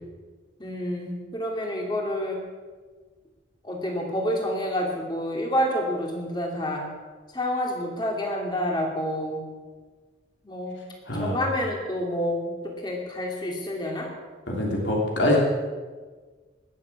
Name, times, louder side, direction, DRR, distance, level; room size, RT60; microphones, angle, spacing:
voice 1, 0.6-2.4 3.6-6.8 7.3-9.4 10.4-10.8 11.2-12.5 12.8-14.1, equal, 25° left, 0 dB, 2.7 m, -28 dB
voice 2, 11.1-11.4 14.5-15.4, left 1 dB, 70° left, -2 dB, 3.2 m, -24 dB
19.5 x 7.7 x 7.2 m, 1.4 s
head